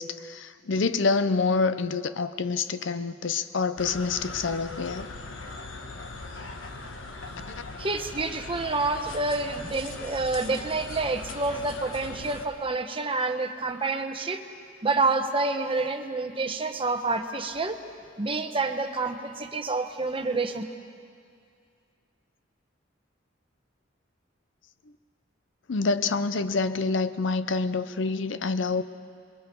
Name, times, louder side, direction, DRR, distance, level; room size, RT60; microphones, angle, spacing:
voice 1, 0.0-5.1 25.7-28.8, left 4 dB, 70° left, 12 dB, 0.6 m, -27 dB
sound 1, 3.8-12.5, left 3 dB, 90° left, 1.4 m, -40 dB
voice 2, 7.8-14.4 14.8-17.8 18.2-20.6, right 3 dB, 30° right, 6 dB, 1.0 m, -28 dB
27.0 x 22.0 x 4.6 m, 2.3 s
head